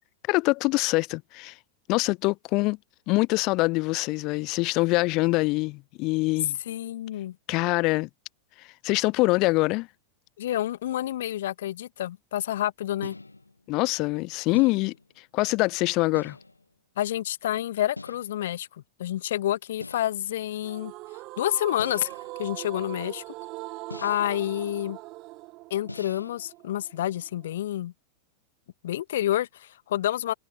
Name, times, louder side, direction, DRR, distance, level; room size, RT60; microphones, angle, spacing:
voice 1, 0.3-1.5 1.9-2.8 3.1-6.6 7.5-8.1 8.8-9.9 13.7-14.9 15.3-16.4, left 23 dB, 40° left, 0.4 m, -24 dB
voice 2, 6.6-7.4 10.4-13.2 17.0-20.9 21.4-22.1 22.4-23.3 24.0-25.0 25.7-27.9 28.8-30.3, left 12 dB, 60° left, 1.6 m, -29 dB
sound 1, 13.0-13.7 14.5-15.2 16.1-16.7 18.0-18.5 19.8-20.3 21.8-22.3 23.9-24.5 25.9-26.4, left 2 dB, 85° left, 1.2 m, -42 dB
sound 2, 20.6-27.7, right 21 dB, 40° right, 0.5 m, -41 dB
figure-of-eight pair, 90°, 0 cm